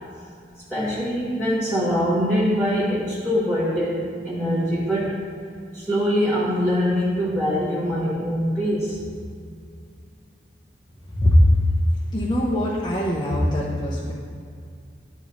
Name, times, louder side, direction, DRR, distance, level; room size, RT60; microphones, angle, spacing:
voice 1, 0.7-5.2 5.7-9.0, equal, 5° right, -9 dB, 1.4 m, -23 dB
voice 2, 12.1-14.1, left 1 dB, 25° left, -8 dB, 1.0 m, -22 dB
12.5 x 5.1 x 4.1 m, 2.3 s
head